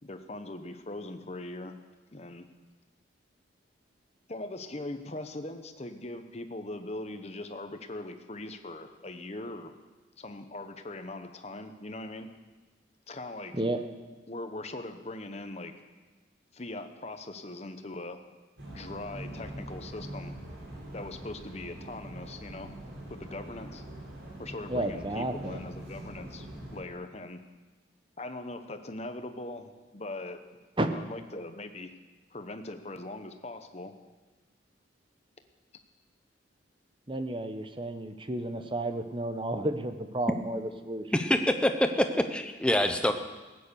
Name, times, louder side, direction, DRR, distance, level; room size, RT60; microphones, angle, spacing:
voice 1, 0.0-1.8 2.1-2.4 4.3-9.7 10.2-12.3 13.1-13.5 14.3-15.7 16.5-18.2 18.7-20.3 20.9-22.7 23.1-23.8 24.4-26.5 26.7-27.4 28.2-30.4 30.9-31.9 32.3-33.9, left 2 dB, 35° left, 8 dB, 0.9 m, -40 dB
sound 1, 18.6-26.8, right 1 dB, 80° right, 4.2 m, -43 dB
voice 2, 24.7-25.6 30.8-30.9 37.1-41.1, right 1 dB, 25° right, 7 dB, 0.9 m, -32 dB
voice 3, 41.1-41.9 42.3-43.1, left 1 dB, 5° left, 6 dB, 0.8 m, -25 dB
16.0 x 9.4 x 6.9 m, 1.2 s
head